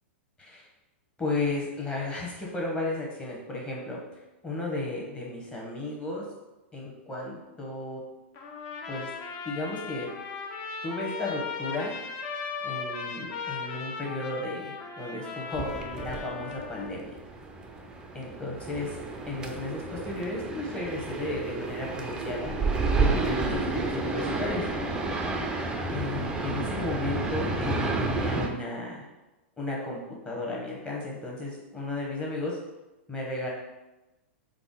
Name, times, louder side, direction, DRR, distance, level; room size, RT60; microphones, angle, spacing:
voice 1, 1.2-4.0 4.4-6.2 6.7-8.0 8.9-9.1 9.4-10.1 10.8-11.9 12.6-17.1 18.1-19.0 19.3-22.6 23.0-24.6 25.9-29.1 29.6-30.0 30.2-32.6 33.1-33.5, left 2 dB, 15° left, -3 dB, 1.0 m, -34 dB
Trumpet, 8.3-16.9, left 5 dB, 45° left, 0.6 m, -37 dB
sound 1, 15.5-28.5, right 3 dB, 10° right, 0.4 m, -31 dB
3.6 x 2.1 x 3.6 m, 1.0 s
hypercardioid pair, 115°, 7 cm